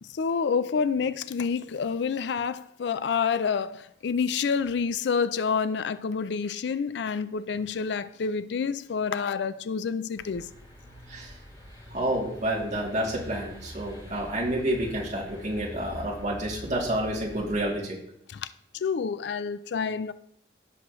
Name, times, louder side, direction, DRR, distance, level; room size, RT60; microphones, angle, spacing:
voice 1, 0.0-10.5 18.3-20.1, left 6 dB, 65° left, 0.4 m, -28 dB
sound 1, 10.2-17.7, left 1 dB, 20° left, 2.7 m, -44 dB
voice 2, 11.9-18.0, right 1 dB, 40° right, 2.7 m, -29 dB
16.5 x 6.2 x 3.1 m
head